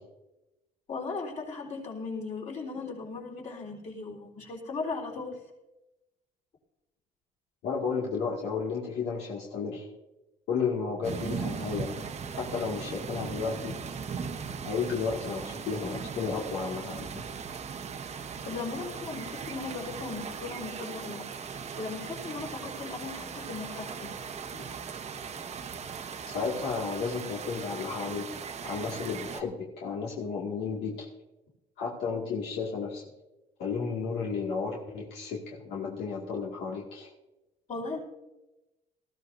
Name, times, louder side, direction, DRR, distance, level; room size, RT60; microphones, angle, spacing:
voice 1, 0.9-5.4 18.1-21.3 21.8-24.1 24.5-24.7 37.7-38.0, left 4 dB, 45° left, -2 dB, 4.0 m, -37 dB
voice 2, 7.6-9.9 10.5-11.9 12.4-13.8 14.6-17.3 26.3-31.1 31.8-33.0 33.6-37.1, left 5 dB, 80° left, -3 dB, 2.1 m, -33 dB
sound 1, 11.0-29.4, right 6 dB, 40° right, 1.0 m, -38 dB
19.0 x 14.5 x 2.7 m, 0.99 s
cardioid pair, 110°, 17 cm